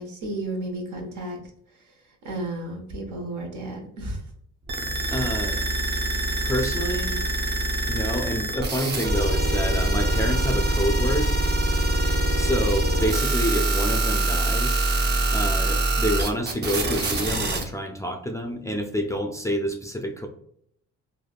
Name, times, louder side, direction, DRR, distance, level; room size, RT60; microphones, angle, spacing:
voice 1, 0.0-1.4 2.2-4.2 4.9-5.1, right 1 dB, 75° right, 2 dB, 0.9 m, -33 dB
sound 1, 4.7-17.6, right 1 dB, 35° right, 0.6 m, -24 dB
voice 2, 4.8-5.6 6.4-7.1 7.9-11.3 12.4-14.9 15.3-20.3, equal, 10° left, 4 dB, 0.3 m, -28 dB
3.3 x 2.2 x 2.3 m, 0.68 s
cardioid pair, 90°, 30 cm